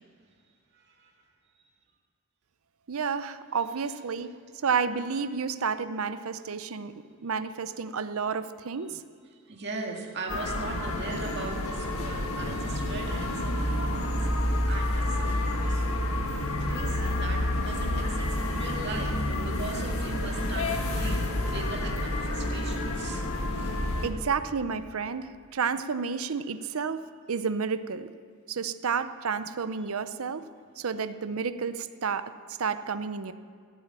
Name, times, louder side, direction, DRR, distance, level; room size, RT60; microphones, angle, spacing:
voice 1, 0.7-1.2 9.5-16.1 16.6-23.3 23.5-23.8, right 3 dB, 50° right, 0 dB, 2.0 m, -40 dB
voice 2, 2.9-4.3 4.6-6.9 7.2-9.0 24.0-28.1 28.5-30.5 30.8-32.3 32.6-33.3, right 5 dB, 75° right, 12 dB, 0.6 m, -31 dB
sound 1, 10.3-24.1, left 1 dB, 75° left, 1.5 m, -29 dB
16.0 x 8.2 x 8.9 m, 2.2 s
head